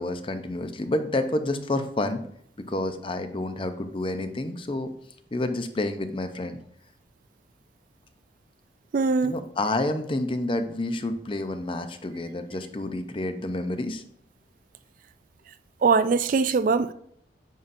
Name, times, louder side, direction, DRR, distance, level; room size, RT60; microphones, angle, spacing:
voice 1, 0.0-2.2 2.6-4.9 5.3-6.6 9.2-14.0, left 2 dB, 30° left, 0.6 m, -29 dB
voice 2, 8.9-9.3 15.8-16.9, right 4 dB, 50° right, 0.3 m, -21 dB
9.2 x 5.6 x 2.6 m
head